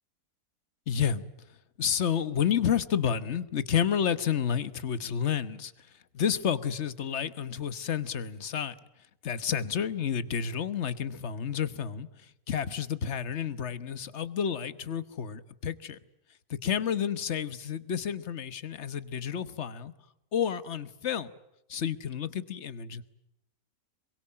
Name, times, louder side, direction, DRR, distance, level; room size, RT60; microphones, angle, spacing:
voice 1, 0.9-1.2 1.8-5.9 6.1-8.7 9.2-12.1 12.5-16.0 16.5-19.9 20.3-21.3 21.7-23.1, left 8 dB, 50° left, 14 dB, 1.4 m, -30 dB
26.5 x 23.0 x 8.7 m, 0.84 s
omnidirectional pair, 1.6 m